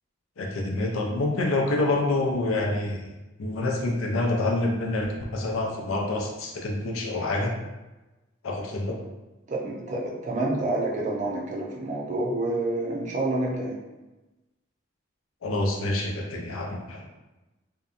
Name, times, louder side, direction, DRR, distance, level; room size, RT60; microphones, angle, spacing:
voice 1, 0.4-3.1 3.4-7.5 8.4-9.0 15.4-17.1, left 2 dB, 90° left, 0 dB, 0.5 m, -27 dB
voice 2, 9.5-13.8, right 2 dB, 35° right, -3 dB, 0.4 m, -28 dB
2.7 x 2.2 x 2.4 m, 1.1 s
head